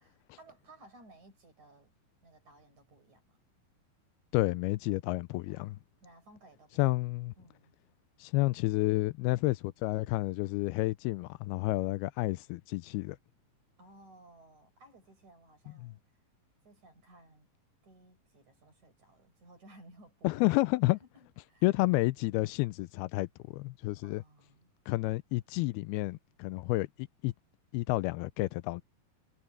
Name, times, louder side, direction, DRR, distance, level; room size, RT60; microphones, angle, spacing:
voice 1, 0.4-1.9 2.2-3.4 5.5-6.9 7.4-7.7 11.8-12.0 13.8-16.2 16.6-17.5 17.8-20.5 21.0-21.7 24.0-24.7 26.5-26.7, right 2 dB, 50° right, 7.6 m, -58 dB
voice 2, 4.3-5.8 6.8-7.3 8.2-13.2 15.8-15.9 20.2-21.0 21.6-23.3 23.5-24.2 24.9-27.3 27.7-28.8, left 20 dB, 85° left, 2.5 m, -30 dB
omnidirectional pair, 4.5 m